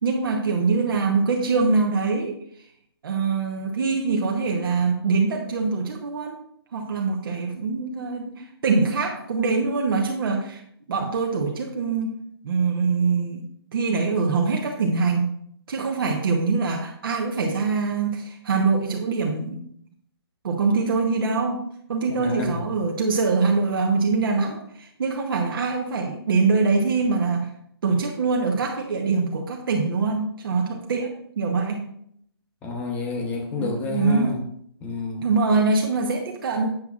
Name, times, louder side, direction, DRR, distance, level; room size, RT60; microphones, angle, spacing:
voice 1, 0.0-2.4 3.0-6.4 6.7-10.6 10.9-12.2 12.4-13.4 13.7-15.3 15.7-19.7 20.4-21.6 21.9-27.5 27.8-31.9 33.6-34.4 35.2-36.7, right 4 dB, 60° right, 1 dB, 0.9 m, -23 dB
voice 2, 22.1-22.8 32.6-34.4 34.8-35.3, left 4 dB, 10° left, 3 dB, 0.7 m, -30 dB
7.9 x 7.0 x 2.4 m, 0.69 s
hypercardioid pair, 160°, 14 cm